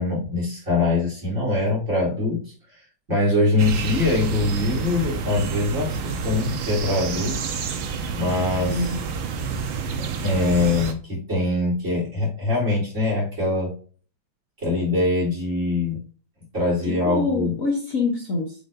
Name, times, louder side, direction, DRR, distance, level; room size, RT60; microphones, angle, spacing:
voice 1, 0.0-2.4 3.1-7.4 8.1-8.9 10.0-13.7 14.6-16.0 16.5-17.5, left 2 dB, 35° right, -4 dB, 3.8 m, -23 dB
sound 1, 3.6-10.9, right 5 dB, 80° right, 1.7 m, -29 dB
voice 2, 8.7-9.0 16.9-18.5, left 3 dB, 50° left, 1 dB, 1.4 m, -25 dB
7.6 x 5.5 x 2.6 m, 0.41 s
omnidirectional pair, 2.2 m